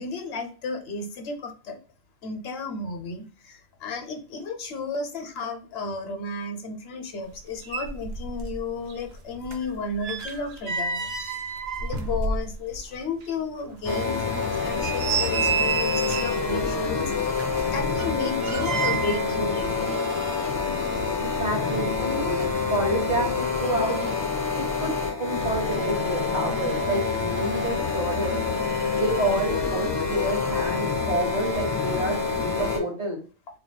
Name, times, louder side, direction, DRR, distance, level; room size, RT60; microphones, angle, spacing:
voice 1, 0.0-1.8 2.2-11.5 11.8-17.1 17.7-19.9, left 3 dB, 70° left, 6 dB, 0.8 m, -33 dB
sound 1, 7.4-7.5 7.6-8.6 8.9-12.9 13.2-13.3 13.8-13.9 14.5-16.5 17.3-19.3 19.6-19.7, right 5 dB, 70° right, 0.9 m, -30 dB
sound 2, 13.8-32.8, left 4 dB, 25° left, 1.4 m, -27 dB
voice 2, 21.2-24.0 24.5-24.9 25.2-28.4 28.9-33.2, right 1 dB, 40° right, 0 dB, 1.2 m, -29 dB
3.9 x 2.7 x 2.2 m, 0.38 s
omnidirectional pair, 1.1 m